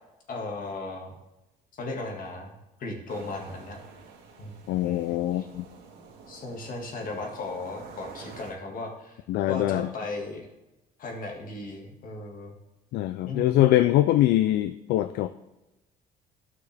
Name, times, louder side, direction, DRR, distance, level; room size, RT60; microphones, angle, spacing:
voice 1, 0.3-1.1 1.7-3.8 4.4-4.5 4.8-5.5 6.3-9.2 9.5-10.5 11.0-12.5 13.2-13.8, left 2 dB, 55° left, 1 dB, 1.9 m, -36 dB
sound 1, 3.1-8.5, right 4 dB, 75° right, 1.9 m, -48 dB
voice 2, 4.7-5.6 9.3-9.9 12.9-15.3, left 14 dB, 75° left, 11 dB, 0.4 m, -23 dB
12.5 x 6.0 x 3.4 m, 0.99 s
cardioid pair, 110°, 17 cm